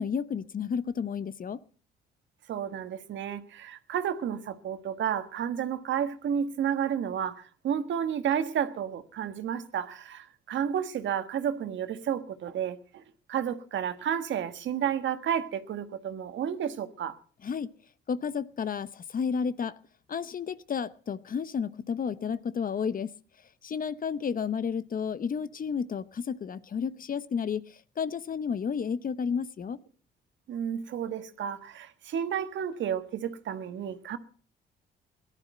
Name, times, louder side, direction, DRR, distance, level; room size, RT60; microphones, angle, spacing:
voice 1, 0.0-1.6 17.4-17.7 18.1-19.8 20.1-23.1 23.6-29.8, left 6 dB, 45° left, 0.9 m, -32 dB
voice 2, 2.5-13.0 13.3-17.2 30.5-34.2, right 8 dB, 70° right, 1.5 m, -31 dB
17.5 x 12.0 x 5.4 m
cardioid pair, 90°, 20 cm